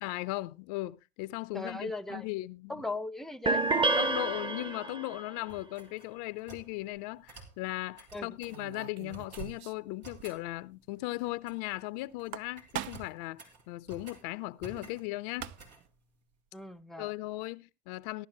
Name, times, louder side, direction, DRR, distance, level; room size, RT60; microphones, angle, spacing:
voice 1, 0.0-2.9 4.0-15.5 17.0-18.3, left 19 dB, 65° left, 0.5 m, -37 dB
voice 2, 1.5-2.3 2.7-3.7 8.1-8.3 16.5-17.1, left 2 dB, ahead, 0.6 m, -38 dB
sound 1, 3.5-5.2, right 2 dB, 25° right, 1.0 m, -28 dB
sound 2, 5.5-6.7 7.3-7.6 8.0-8.6 9.1-9.5 10.0-10.4 11.2-11.8 12.1-12.3 12.6-14.2 14.6-15.1 15.4-15.8, right 3 dB, 85° right, 3.0 m, -51 dB
sound 3, 6.7-7.0 8.5-9.9 10.2-10.3 10.6-10.7 12.1-13.2 15.0-15.1 15.3-15.9, right 11 dB, 60° right, 0.7 m, -42 dB
15.0 x 11.5 x 3.0 m
hypercardioid pair, 70°, 21 cm